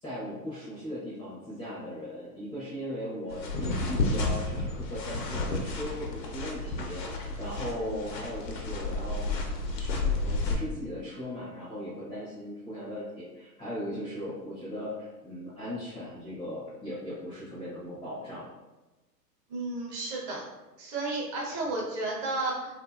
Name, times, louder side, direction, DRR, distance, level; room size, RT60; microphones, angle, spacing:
voice 1, 0.0-9.4 9.7-18.5, left 1 dB, 10° left, -9 dB, 0.4 m, -38 dB
sound 1, 3.3-10.6, left 2 dB, 80° left, 0.7 m, -31 dB
voice 2, 19.5-20.4 20.8-22.8, right 2 dB, 35° right, -2 dB, 0.6 m, -32 dB
2.6 x 2.5 x 2.3 m, 1.1 s
hypercardioid pair, 105°, 50 cm